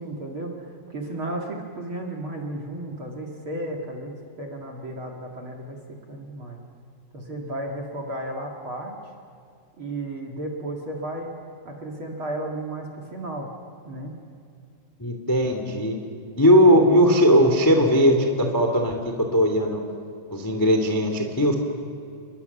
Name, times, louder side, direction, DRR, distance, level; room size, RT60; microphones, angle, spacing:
voice 1, 0.0-6.6 7.1-9.0 9.8-11.3 11.6-13.5 13.9-14.2, right 1 dB, 40° right, 2 dB, 2.3 m, -34 dB
voice 2, 15.0-16.0 16.4-19.8 20.3-21.5, equal, 10° left, 4 dB, 1.2 m, -19 dB
30.0 x 22.0 x 7.0 m, 2.5 s
omnidirectional pair, 5.1 m